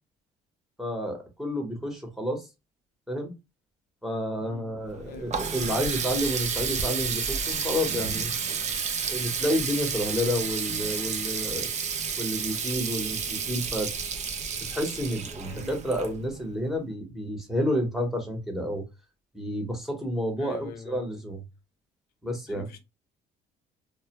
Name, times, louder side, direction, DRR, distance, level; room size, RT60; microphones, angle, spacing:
voice 1, 0.8-2.4 3.1-3.3 4.0-8.3 9.1-11.7 12.2-13.9 14.6-18.8 19.3-21.4 22.2-22.7, equal, ahead, 0.9 m, -30 dB
Water tap faucet, 4.9-16.5, right 6 dB, 45° right, 0.4 m, -31 dB
voice 2, 5.0-5.5 15.4-15.8 20.4-21.2 22.5-22.8, left 5 dB, 65° left, 0.6 m, -43 dB
2.1 x 2.1 x 2.8 m
cardioid pair, 110°, 17 cm